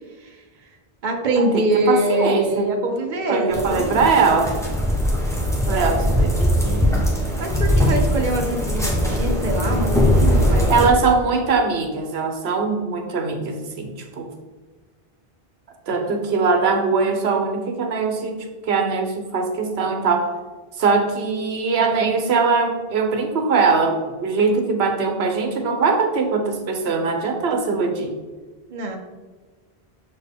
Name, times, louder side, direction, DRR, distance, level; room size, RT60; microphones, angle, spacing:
voice 1, 1.0-4.1 7.4-10.9 28.7-29.0, right 1 dB, 50° right, 3 dB, 0.9 m, -24 dB
voice 2, 1.7-2.7 3.3-4.5 5.7-6.9 10.7-14.3 15.9-20.3 20.8-28.1, right 4 dB, 90° right, 4 dB, 1.1 m, -21 dB
sound 1, 3.5-10.9, equal, 5° left, 1.1 m, -20 dB
6.7 x 4.5 x 3.5 m, 1.4 s
omnidirectional pair, 1.0 m